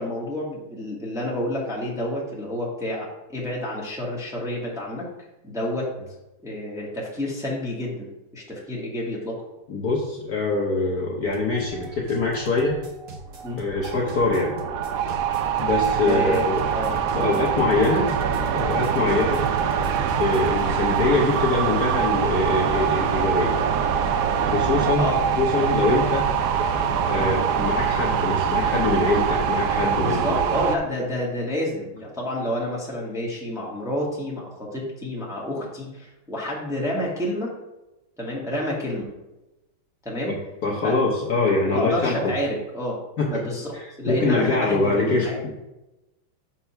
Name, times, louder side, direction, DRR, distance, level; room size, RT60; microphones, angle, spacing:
voice 1, 0.0-5.1 5.4-5.9 6.4-9.4 13.4-13.6 16.0-16.4 16.7-17.3 19.0-19.2 25.0-25.2 27.1-27.3 29.9-37.5 38.2-39.1 40.0-40.4 40.8-40.9 41.7-43.0 43.2-45.4, left 1 dB, ahead, -4 dB, 1.3 m, -29 dB
voice 2, 9.7-12.8 13.6-14.5 15.6-16.7 17.1-18.1 18.5-19.4 20.2-23.6 24.5-25.1 25.4-26.2 27.1-30.4 40.6-42.3 43.2-43.3 43.7-45.6, left 3 dB, 55° left, -2 dB, 1.2 m, -23 dB
sound 1, 11.2-21.5, right 3 dB, 50° right, 0.7 m, -41 dB
sound 2, 13.4-30.8, right 7 dB, 90° right, 0.9 m, -24 dB
5.9 x 4.5 x 5.7 m, 0.99 s
omnidirectional pair, 2.3 m